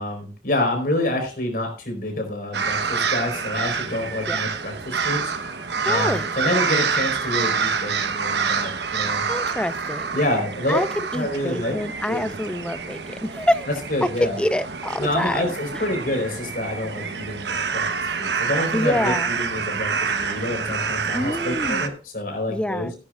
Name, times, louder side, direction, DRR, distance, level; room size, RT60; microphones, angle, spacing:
voice 1, 0.0-5.6 5.8-9.3 10.1-10.8 11.1-11.8 12.1-12.3 13.9-14.4 15.0-22.9, left 1 dB, 55° left, 3 dB, 4.4 m, -27 dB
sound 1, 2.5-21.9, right 5 dB, 75° right, 1.1 m, -27 dB
voice 2, 5.8-6.3 9.3-10.2 10.7-10.9 11.1-13.7 14.2-15.4 15.7-15.9 18.7-19.3 21.1-21.9 22.5-22.9, left 1 dB, 5° left, 14 dB, 0.4 m, -26 dB
17.0 x 9.8 x 2.5 m, 0.35 s
head